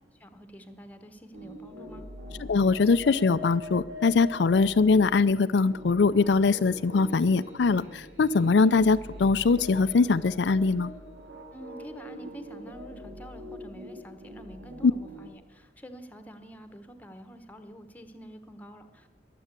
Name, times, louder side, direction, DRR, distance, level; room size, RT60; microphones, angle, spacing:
voice 1, 0.1-2.1 11.5-19.1, equal, 10° left, 8 dB, 1.1 m, -47 dB
sound 1, 1.3-15.3, left 1 dB, 85° right, 2.8 m, -43 dB
voice 2, 2.5-10.9 14.8-14.9, left 4 dB, 75° left, 12 dB, 0.4 m, -22 dB
22.0 x 7.7 x 8.2 m, 1.3 s
head